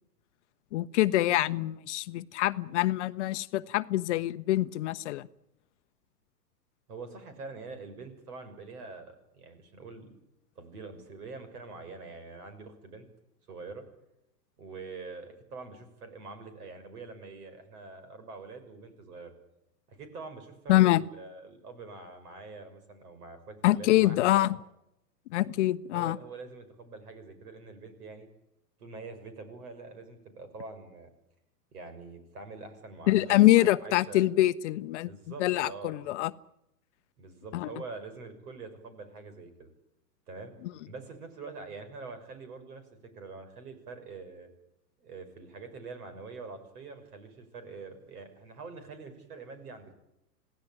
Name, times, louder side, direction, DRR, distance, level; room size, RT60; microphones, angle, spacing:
voice 1, 0.7-5.3 20.7-21.0 23.6-24.6 25.3-26.2 33.1-35.1 35.4-36.3 37.5-37.7, left 16 dB, 45° left, 0.8 m, -25 dB
voice 2, 6.9-10.1 10.6-13.1 13.5-13.8 14.6-19.3 19.9-24.5 25.9-28.3 28.8-31.1 31.7-34.3 35.0-36.1 37.2-39.7 40.3-40.5 40.8-42.9 43.1-44.5 45.0-50.0, right 4 dB, 65° right, 6.4 m, -45 dB
27.5 x 17.5 x 9.1 m
hypercardioid pair, 110°, 49 cm